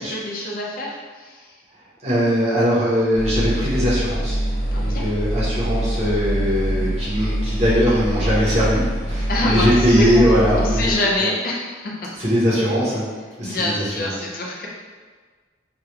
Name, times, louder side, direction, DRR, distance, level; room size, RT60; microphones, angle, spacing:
voice 1, 0.0-1.5 4.7-5.0 9.3-10.2 10.6-12.1 13.4-14.7, left 1 dB, 45° left, -2 dB, 0.4 m, -26 dB
voice 2, 2.0-4.4 4.8-10.9 11.2-11.3 12.2-13.0 13.4-14.3, equal, 35° right, -8 dB, 0.9 m, -20 dB
sound 1, 3.1-10.9, right 1 dB, 85° left, 1.1 m, -24 dB
3.2 x 2.3 x 3.1 m, 1.5 s
head